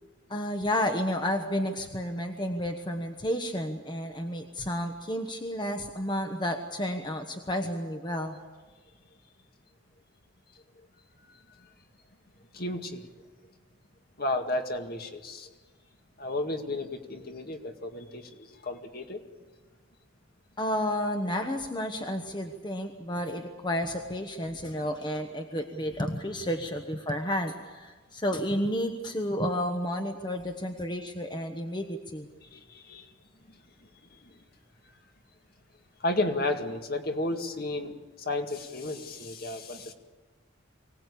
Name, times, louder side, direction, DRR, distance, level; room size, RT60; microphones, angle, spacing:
voice 1, 0.3-8.4 20.6-32.3, equal, 25° left, 5 dB, 1.2 m, -31 dB
voice 2, 12.5-13.1 14.2-15.5 16.2-19.2 32.4-33.1 33.5-33.6 34.1-34.4 36.0-39.9, left 2 dB, 50° left, 4 dB, 2.0 m, -33 dB
24.5 x 18.0 x 8.5 m, 1.3 s
head